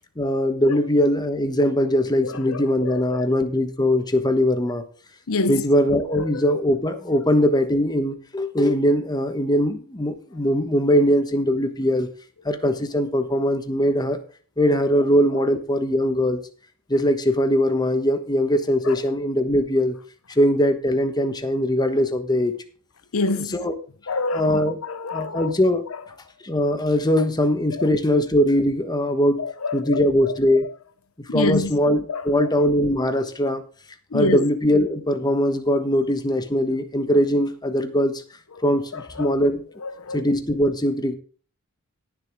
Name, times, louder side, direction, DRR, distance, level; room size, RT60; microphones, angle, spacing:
voice 1, 0.2-4.8 5.5-12.1 12.4-14.2 14.6-16.4 16.9-20.0 20.4-22.5 23.5-23.7 24.3-24.8 25.1-25.8 26.4-29.4 29.7-30.6 31.3-33.6 34.1-38.2 38.6-39.6 40.1-41.1, equal, 20° left, 1.2 m, -21 dB
voice 2, 2.2-3.3 5.3-5.6 6.1-6.6 18.8-19.0 23.1-23.6 24.1-25.5 27.7-27.9 29.4-30.7 31.3-31.7 32.1-32.5 34.1-34.5 38.9-39.4 39.8-40.2, left 3 dB, 85° left, 0.8 m, -28 dB
17.0 x 7.1 x 3.5 m
head